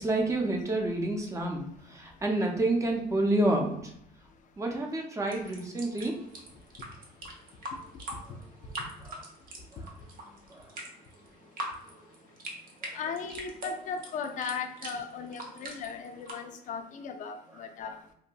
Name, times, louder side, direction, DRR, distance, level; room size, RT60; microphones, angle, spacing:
voice 1, 0.0-3.9 4.6-6.2 9.0-9.2 9.7-9.9 10.5-10.7 12.8-13.0, right 1 dB, 20° right, 1 dB, 0.5 m, -29 dB
sound 1, 5.3-16.3, right 1 dB, 60° right, 0.8 m, -44 dB
voice 2, 12.9-18.0, left 5 dB, 50° left, 5 dB, 0.4 m, -37 dB
2.7 x 2.6 x 2.2 m, 0.72 s
cardioid pair, 110°, 17 cm